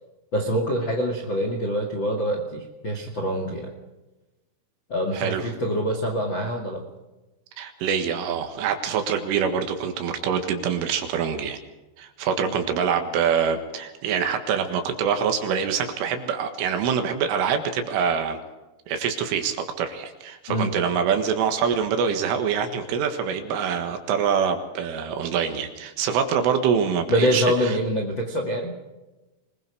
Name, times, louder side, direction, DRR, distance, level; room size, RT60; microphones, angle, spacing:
voice 1, 0.3-3.7 4.9-6.8 12.4-12.6 20.5-20.7 27.1-28.7, equal, 50° left, 2 dB, 1.4 m, -25 dB
voice 2, 5.1-5.5 7.6-11.6 12.0-18.4 18.9-27.7, right 7 dB, 75° right, 6 dB, 4.1 m, -25 dB
25.0 x 21.0 x 5.0 m, 1.1 s
omnidirectional pair, 5.8 m